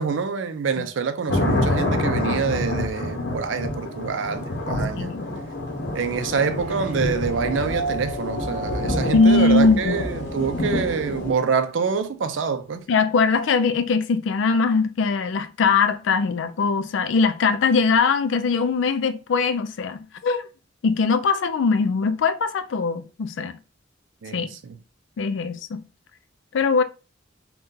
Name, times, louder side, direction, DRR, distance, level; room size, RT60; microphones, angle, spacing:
voice 1, 0.0-5.1 5.9-12.9 24.2-24.8, right 5 dB, 80° right, 0.4 m, -26 dB
sound 1, 1.3-11.3, left 1 dB, 60° left, 0.8 m, -27 dB
voice 2, 4.9-5.3 9.1-10.0 12.9-20.4 20.8-23.6 24.3-24.5 25.2-25.8 26.5-26.8, left 4 dB, 75° left, 0.4 m, -21 dB
sound 2, 6.5-12.0, right 2 dB, 35° right, 0.9 m, -35 dB
2.7 x 2.2 x 3.7 m
head